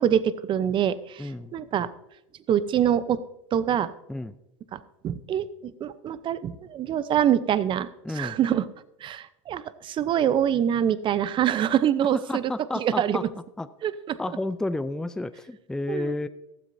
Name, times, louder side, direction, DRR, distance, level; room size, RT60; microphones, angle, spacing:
voice 1, 0.0-1.9 2.5-3.2 3.5-3.9 4.7-8.7 9.0-13.2 13.8-14.2 15.9-16.1, right 9 dB, 30° right, 15 dB, 0.7 m, -25 dB
voice 2, 1.2-1.5 4.1-4.3 8.0-8.4 12.3-13.2 13.6-13.7 14.2-16.3, left 2 dB, 5° left, 13 dB, 0.5 m, -31 dB
15.5 x 13.0 x 2.7 m, 0.87 s
hypercardioid pair, 105°, 16 cm